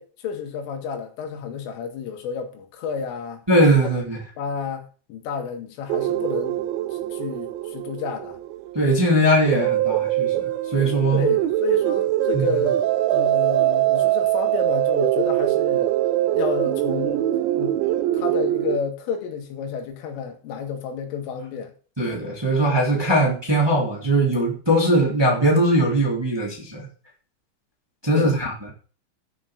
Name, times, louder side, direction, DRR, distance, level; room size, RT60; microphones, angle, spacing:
voice 1, 0.0-3.4 4.4-6.6 6.9-8.4 11.1-12.8 13.1-15.9 16.3-17.8 18.1-21.7 28.1-28.4, left 6 dB, 85° left, 4.5 m, -30 dB
voice 2, 3.5-4.2 8.7-11.3 12.3-12.6 22.0-26.9 28.0-28.5, right 1 dB, 10° right, 1.9 m, -20 dB
sound 1, 5.9-18.8, right 14 dB, 80° right, 2.8 m, -23 dB
14.0 x 6.3 x 6.4 m
omnidirectional pair, 5.7 m